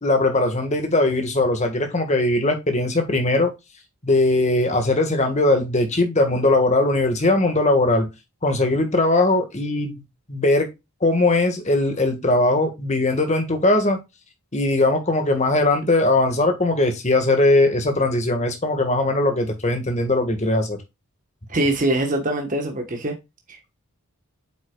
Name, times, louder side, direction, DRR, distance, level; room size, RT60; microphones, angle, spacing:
voice 1, 0.0-3.5 4.0-8.1 8.4-10.0 10.3-10.7 11.0-14.0 14.5-20.8, left 2 dB, 30° left, 1.7 m, -20 dB
voice 2, 21.5-23.1 23.5-23.8, right 1 dB, 35° right, 1.3 m, -23 dB
8.3 x 6.2 x 2.3 m
head